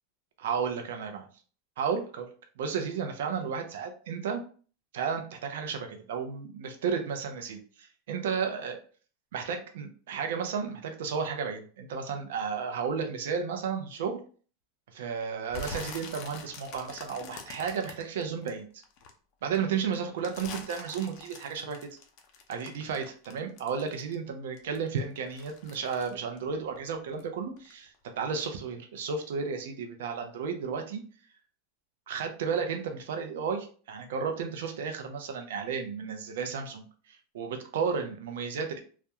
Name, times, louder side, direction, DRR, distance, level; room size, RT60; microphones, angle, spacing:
voice 1, 0.4-1.2 1.8-2.3 2.6-4.4 4.9-8.8 9.3-14.2 14.9-18.8 19.4-21.8 22.5-31.0 32.1-38.8, right 6 dB, 80° right, 5 dB, 0.5 m, -33 dB
sound 1, 15.5-19.1 19.5-24.3 24.6-27.3 27.6-28.0 28.4-28.5, left 4 dB, 50° left, 0.6 m, -44 dB
2.3 x 2.2 x 2.8 m, 0.41 s
supercardioid pair, 125°, 0 cm